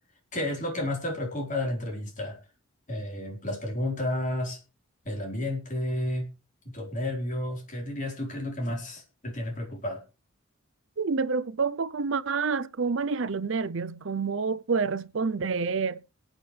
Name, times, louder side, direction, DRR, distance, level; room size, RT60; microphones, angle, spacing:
voice 1, 0.3-2.4 2.9-4.6 5.0-6.3 6.7-10.0, left 1 dB, 35° left, 4.2 m, -31 dB
voice 2, 11.0-16.0, right 5 dB, 65° right, 0.6 m, -28 dB
21.5 x 9.0 x 3.3 m
head